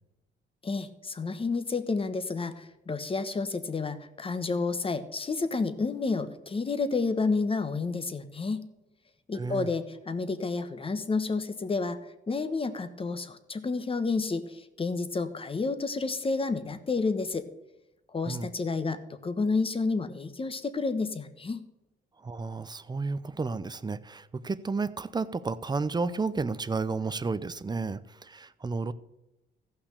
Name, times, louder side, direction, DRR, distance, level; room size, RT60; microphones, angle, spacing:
voice 1, 0.6-8.6 9.3-12.0 12.3-17.5 18.1-21.6, left 4 dB, 30° left, 11 dB, 1.1 m, -30 dB
voice 2, 9.3-9.7 18.2-18.5 22.2-28.9, right 4 dB, 20° right, 15 dB, 0.6 m, -32 dB
15.0 x 5.9 x 6.7 m, 0.96 s
cardioid pair, 90°, 20 cm